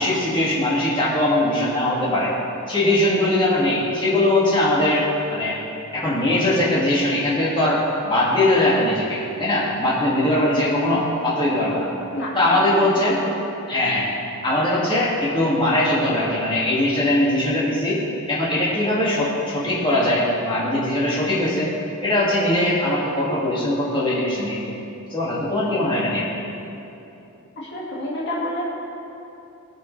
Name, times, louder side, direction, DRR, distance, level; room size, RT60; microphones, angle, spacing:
voice 1, 0.0-2.3 2.7-5.6 5.9-11.9 12.3-13.2 13.7-14.1 14.4-18.0 18.3-21.7 22.0-24.6 25.1-26.3, left 1 dB, 20° left, -7 dB, 2.1 m, -21 dB
voice 2, 12.1-13.1 27.6-28.7, left 1 dB, 50° left, -5 dB, 2.0 m, -29 dB
20.0 x 6.8 x 3.3 m, 2.9 s
head